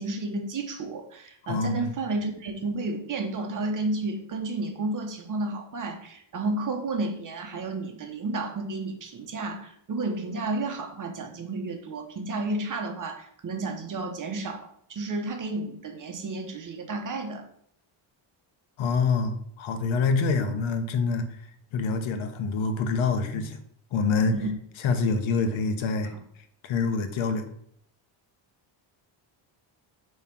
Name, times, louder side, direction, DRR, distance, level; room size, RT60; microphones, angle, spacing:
voice 1, 0.0-17.4 24.3-24.5, right 2 dB, 40° right, 1.1 m, -32 dB
voice 2, 1.4-2.0 18.8-21.3 21.7-23.6 23.9-24.4 24.8-26.1 26.6-27.4, left 4 dB, 70° left, 1.0 m, -26 dB
7.1 x 3.3 x 6.0 m
cardioid pair, 140°, 49 cm